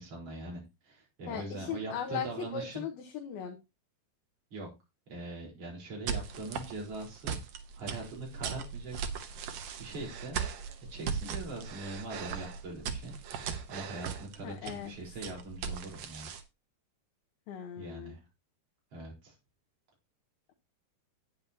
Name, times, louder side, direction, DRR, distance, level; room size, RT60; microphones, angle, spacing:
voice 1, 0.0-2.8 4.5-4.7 5.1-7.4 7.7-9.0 9.8-10.5 10.9-13.1 13.4-16.3 17.8-18.2 18.9-19.4, right 2 dB, 40° right, -2 dB, 5.1 m, -42 dB
voice 2, 1.3-3.6 14.4-14.9 17.5-18.2, left 8 dB, 75° left, 2 dB, 2.9 m, -38 dB
sound 1, 6.1-16.4, right 7 dB, 70° right, 1.7 m, -38 dB
11.0 x 9.3 x 2.9 m, 0.25 s
omnidirectional pair, 4.6 m